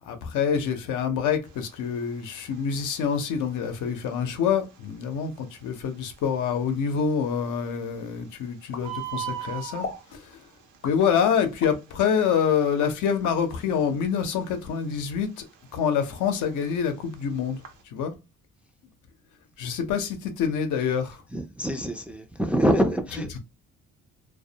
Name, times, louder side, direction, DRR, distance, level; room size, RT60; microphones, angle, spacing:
voice 1, 0.0-10.5 10.8-15.5 15.7-18.1 19.6-21.2, left 7 dB, 85° left, 0.6 m, -26 dB
Bird, 1.4-17.8, right 10 dB, 80° right, 0.7 m, -43 dB
sound 1, 8.7-9.4 9.8-10.1 10.8-11.8 12.3-13.4, left 5 dB, 45° left, 0.7 m, -39 dB
voice 2, 21.3-23.4, equal, 5° right, 0.3 m, -25 dB
2.2 x 2.1 x 2.7 m
cardioid pair, 90°, 30 cm